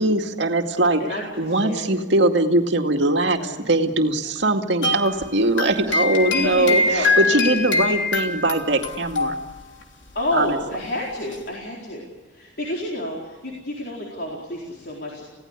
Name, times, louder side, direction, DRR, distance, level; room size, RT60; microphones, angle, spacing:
voice 1, 0.0-1.0 1.4-9.3 10.3-10.6, right 2 dB, 70° right, 4 dB, 2.2 m, -21 dB
voice 2, 1.0-2.0 3.4-3.6 4.2-4.3 6.3-7.8 10.1-12.1 12.3-15.2, left 1 dB, 60° left, -2 dB, 4.3 m, -29 dB
sound 1, 4.8-9.8 10.1-10.3 11.3-11.4, left 3 dB, 85° left, 3.2 m, -24 dB
28.5 x 17.5 x 8.2 m, 1.3 s
head